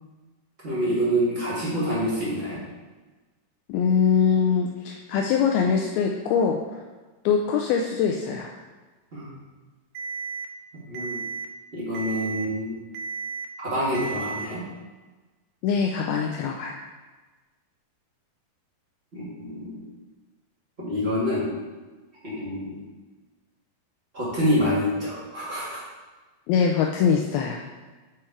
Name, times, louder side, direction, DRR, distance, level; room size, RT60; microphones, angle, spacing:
voice 1, 0.6-2.6 9.1-9.3 10.9-11.2 11.7-12.8 13.6-14.6 19.1-19.8 20.8-21.5 22.2-22.8 24.1-25.9, equal, 40° right, -8 dB, 0.9 m, -26 dB
voice 2, 3.7-6.6 7.3-8.5 15.6-16.8 26.5-27.6, left 6 dB, 85° left, 2 dB, 2.2 m, -23 dB
Alarm, 10.0-10.5 11.0-11.5 12.0-12.5 13.0-13.5 14.0-14.5, right 4 dB, 85° right, 2.7 m, -33 dB
7.6 x 4.4 x 4.7 m, 1.3 s
omnidirectional pair, 4.8 m